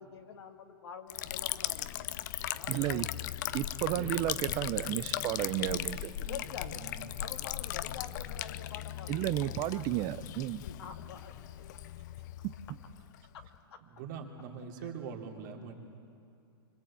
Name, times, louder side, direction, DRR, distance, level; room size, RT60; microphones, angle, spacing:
voice 1, 0.0-1.9 2.5-3.1 5.4-5.9 6.3-6.9 7.2-9.8 10.6-11.6 13.7-13.8, left 7 dB, 85° left, 3 dB, 2.0 m, -47 dB
Liquid, 1.1-13.6, left 13 dB, 50° left, 0.7 m, -38 dB
voice 2, 2.4-3.1 3.5-6.4 9.1-10.6 12.4-12.5, right 14 dB, 30° right, 16 dB, 0.6 m, -33 dB
voice 3, 3.8-4.2 6.7-7.0 13.8-15.7, right 6 dB, 50° right, 2 dB, 3.2 m, -43 dB
25.0 x 24.5 x 8.7 m, 2.5 s
supercardioid pair, 160°, 13 cm